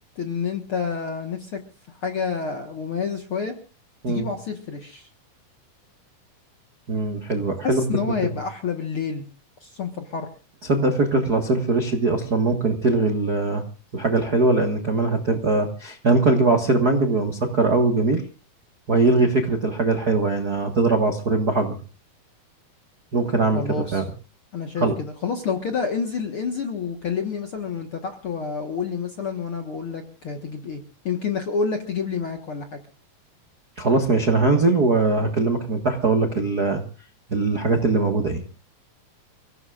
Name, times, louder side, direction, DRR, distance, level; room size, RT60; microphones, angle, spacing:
voice 1, 0.1-1.6 1.9-3.5 4.1-5.1 7.6-9.2 9.6-10.3 23.5-24.1 24.5-32.8, left 5 dB, 55° left, 4 dB, 1.6 m, -28 dB
voice 2, 6.9-7.8 10.7-13.6 13.9-18.2 18.9-21.7 23.1-24.0 24.8-24.9 33.8-36.8 37.3-38.4, right 3 dB, 50° right, 4 dB, 1.1 m, -21 dB
29.0 x 16.5 x 2.5 m, 0.35 s
omnidirectional pair, 4.2 m